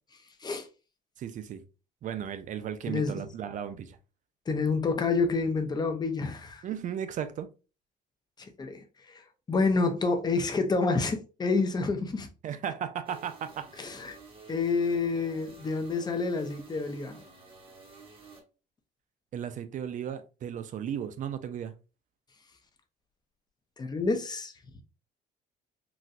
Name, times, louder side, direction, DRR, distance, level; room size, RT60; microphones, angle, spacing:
voice 1, 1.2-1.6 2.0-4.0 6.6-7.5 12.4-13.9 19.3-21.7, right 9 dB, 50° right, 0.5 m, -35 dB
voice 2, 2.9-3.2 4.5-6.6 8.6-9.2 9.5-12.3 13.8-14.2 14.5-17.2 23.8-24.5, left 4 dB, 25° left, 0.6 m, -28 dB
sound 1, 13.0-18.4, right 3 dB, 30° right, 1.2 m, -52 dB
4.0 x 2.2 x 2.5 m
cardioid pair, 110°, 17 cm